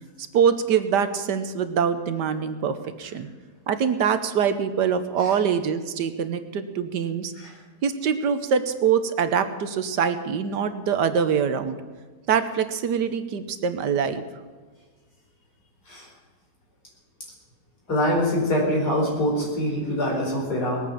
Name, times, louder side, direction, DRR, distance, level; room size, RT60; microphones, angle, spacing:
voice 1, 0.3-3.3 3.7-7.3 7.8-11.8 12.3-14.2, right 7 dB, 75° right, 10 dB, 1.5 m, -24 dB
voice 2, 17.9-20.8, equal, 65° left, -2 dB, 5.3 m, -24 dB
20.0 x 8.9 x 7.3 m, 1.4 s
omnidirectional pair, 1.9 m